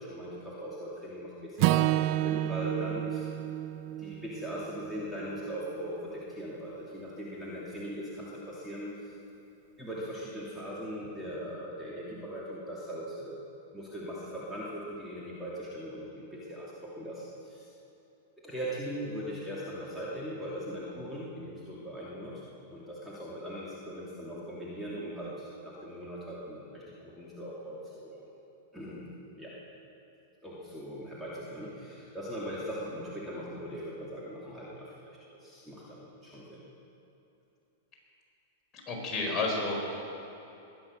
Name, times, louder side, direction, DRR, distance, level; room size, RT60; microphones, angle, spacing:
voice 1, 0.0-3.3 4.0-8.9 9.8-13.3 13.7-17.7 18.4-22.4 22.7-28.2 28.7-29.5 30.4-35.0 35.4-36.6, equal, 5° right, -8 dB, 2.8 m, -40 dB
Acoustic guitar / Strum, 1.6-5.9, right 15 dB, 50° right, 0.4 m, -30 dB
voice 2, 38.9-39.7, left 3 dB, 25° left, -2 dB, 4.7 m, -30 dB
21.5 x 9.7 x 6.5 m, 2.9 s
hypercardioid pair, 115°, 0 cm